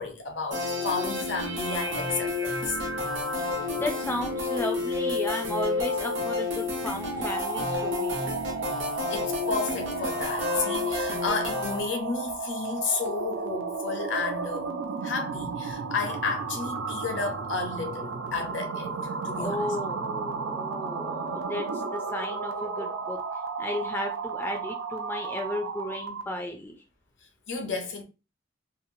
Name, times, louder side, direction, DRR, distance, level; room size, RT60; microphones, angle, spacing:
voice 1, 0.0-2.8 9.1-19.7 27.5-28.0, left 4 dB, 70° left, 0.7 m, -32 dB
sound 1, 0.5-11.8, left 3 dB, 70° right, 0.8 m, -30 dB
voice 2, 3.7-8.3 19.3-23.2 23.6-26.7, left 1 dB, 10° left, 0.3 m, -34 dB
sound 2, 7.0-26.3, right 4 dB, 85° right, 0.5 m, -33 dB
2.9 x 2.3 x 2.6 m
head